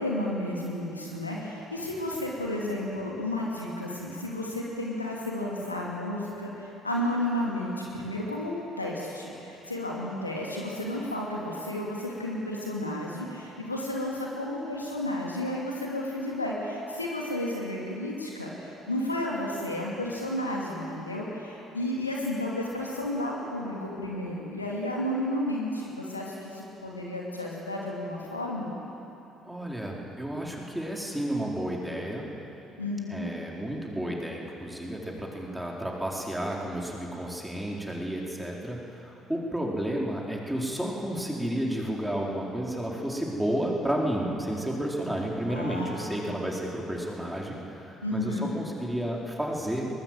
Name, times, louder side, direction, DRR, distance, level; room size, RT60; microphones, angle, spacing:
voice 1, 0.0-28.7 32.8-33.3 45.5-46.3 48.0-48.5, left 1 dB, 85° left, -3 dB, 2.6 m, -32 dB
voice 2, 29.4-32.2 33.1-49.9, right 1 dB, 5° right, -2 dB, 4.4 m, -32 dB
22.5 x 20.5 x 7.9 m, 3.0 s
figure-of-eight pair, 50°, 0 cm